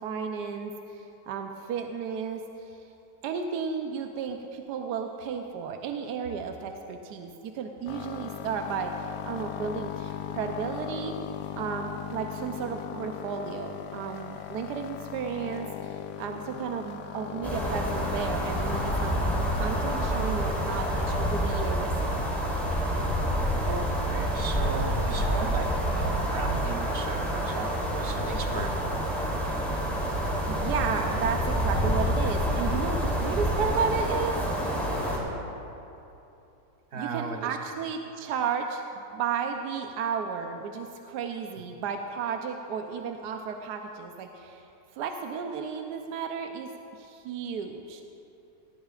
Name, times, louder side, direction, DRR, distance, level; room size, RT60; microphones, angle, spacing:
voice 1, 0.0-2.9 3.2-8.9 9.2-11.2 11.6-21.9 30.5-34.4 36.9-38.8 39.1-44.6 44.9-48.0, right 6 dB, 80° right, 4 dB, 1.2 m, -33 dB
sound 1, 7.9-21.4, left 11 dB, 90° left, 1.2 m, -38 dB
sound 2, 17.4-35.2, equal, ahead, 2.9 m, -28 dB
voice 2, 23.7-28.9 36.9-37.6, right 4 dB, 45° right, 4 dB, 0.9 m, -36 dB
18.5 x 15.5 x 2.4 m, 2.8 s
omnidirectional pair, 1.8 m